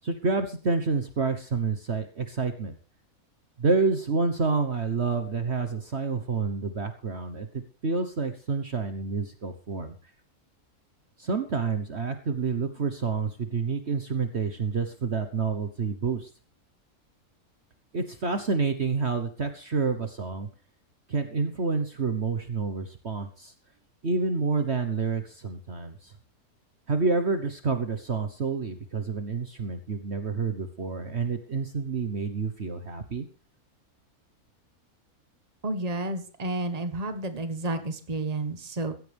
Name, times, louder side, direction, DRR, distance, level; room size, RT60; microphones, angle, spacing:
voice 1, 0.0-2.7 3.6-7.5 7.8-9.9 11.2-16.3 17.9-20.5 21.1-23.5 24.0-25.9 26.9-33.2, right 4 dB, 45° right, 8 dB, 1.5 m, -28 dB
voice 2, 35.6-38.9, right 2 dB, 25° right, 9 dB, 1.5 m, -31 dB
16.0 x 14.5 x 3.5 m, 0.37 s
omnidirectional pair, 1.6 m